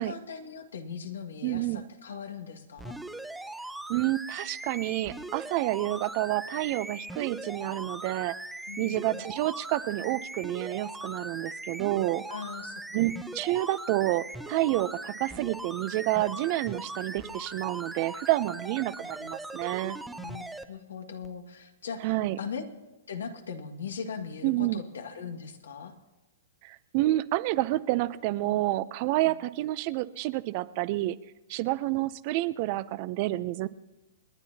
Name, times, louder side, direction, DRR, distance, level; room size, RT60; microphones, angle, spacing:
voice 1, 0.0-3.0 8.7-9.2 12.3-13.1 19.0-19.3 20.2-22.6 23.1-25.9 29.3-29.4, left 6 dB, 90° left, 5 dB, 1.9 m, -40 dB
voice 2, 1.4-1.8 3.9-8.3 8.8-12.2 12.9-20.0 22.0-22.4 24.4-24.8 26.6-31.2 31.5-33.7, right 17 dB, 40° right, 15 dB, 0.6 m, -29 dB
sound 1, 2.8-20.6 21.2-21.3, right 2 dB, 5° right, 0.7 m, -40 dB
29.0 x 9.9 x 2.8 m, 1.1 s
hypercardioid pair, 145°, 0 cm